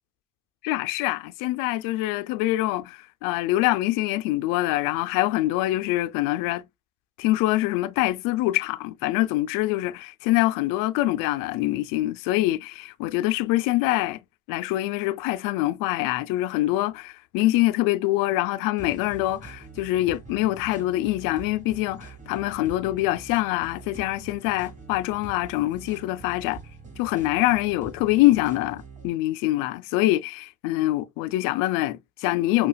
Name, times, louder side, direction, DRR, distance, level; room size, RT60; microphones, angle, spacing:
voice 1, 0.6-6.6 7.2-14.2 14.5-26.6 27.0-32.7, left 17 dB, 80° left, 0.5 m, -24 dB
sound 1, 18.8-29.1, right 4 dB, 25° right, 2.1 m, -44 dB
5.6 x 2.3 x 2.3 m
supercardioid pair, 75°, 32 cm